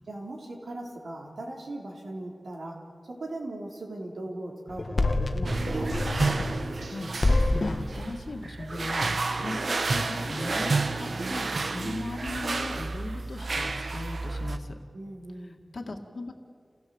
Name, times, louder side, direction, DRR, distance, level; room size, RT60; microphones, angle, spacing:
voice 1, 0.1-6.0 14.9-15.6, right 1 dB, 90° right, -1 dB, 4.0 m, -39 dB
sound 1, 4.7-6.9 7.2-7.9, left 2 dB, 45° left, 1.3 m, -26 dB
sound 2, 5.4-14.6, right 3 dB, 65° right, 1.0 m, -30 dB
voice 2, 6.9-14.8 15.7-16.3, left 2 dB, 65° left, 4 dB, 2.2 m, -38 dB
29.0 x 16.5 x 8.0 m, 2.2 s
wide cardioid pair, 90°, 0 cm